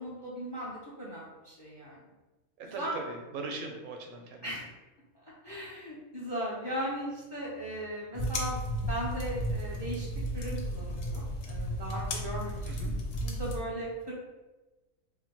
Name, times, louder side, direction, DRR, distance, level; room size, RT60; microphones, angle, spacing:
voice 1, 0.0-2.0 2.6-3.0 4.4-4.6 5.2-8.6 8.9-10.1 10.3-14.1, equal, 30° left, -6 dB, 0.5 m, -38 dB
voice 2, 2.6-4.5 12.7-12.9, right 3 dB, 90° right, 2 dB, 1.0 m, -39 dB
sound 1, 8.1-13.6, equal, 85° left, 1.1 m, -34 dB
3.5 x 2.2 x 2.9 m, 1.1 s
omnidirectional pair, 1.4 m